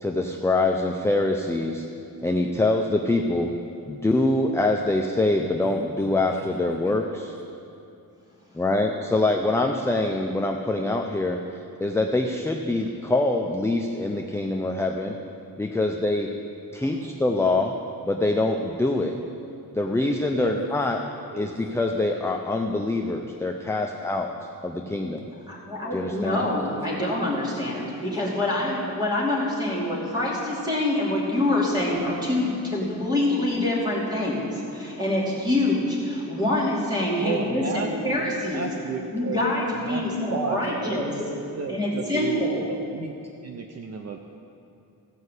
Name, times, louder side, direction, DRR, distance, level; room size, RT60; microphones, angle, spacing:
voice 1, 0.0-1.9 2.2-3.5 3.8-7.3 8.5-11.4 11.8-15.1 15.6-16.3 16.7-17.7 18.0-19.1 19.7-21.0 21.4-24.3 24.6-25.2 25.9-26.5, left 2 dB, 5° left, 2 dB, 0.4 m, -24 dB
voice 2, 5.4-6.4 6.6-6.7 20.3-20.7 21.3-21.5 37.2-39.5 39.8-41.0 41.6-43.1 43.4-44.2, right 5 dB, 45° right, 3 dB, 0.6 m, -33 dB
voice 3, 25.5-38.7 39.1-41.3 41.7-42.6, left 1 dB, 10° right, -5 dB, 2.7 m, -26 dB
15.5 x 5.4 x 8.0 m, 2.7 s
wide cardioid pair, 155°, 37 cm